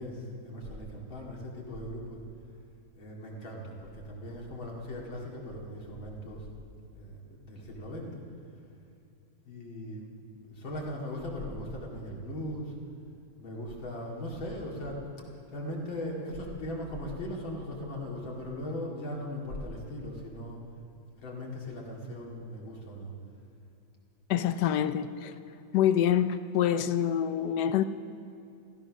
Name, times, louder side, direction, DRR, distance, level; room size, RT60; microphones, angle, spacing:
voice 1, 0.0-2.2 3.0-6.5 6.9-8.1 9.4-12.7 13.4-15.1 15.5-20.6 21.2-23.1, left 1 dB, 85° left, -2 dB, 3.2 m, -39 dB
voice 2, 24.3-25.3 25.7-27.8, left 10 dB, 70° left, 11 dB, 1.1 m, -26 dB
15.5 x 15.0 x 6.3 m, 2.6 s
omnidirectional pair, 2.1 m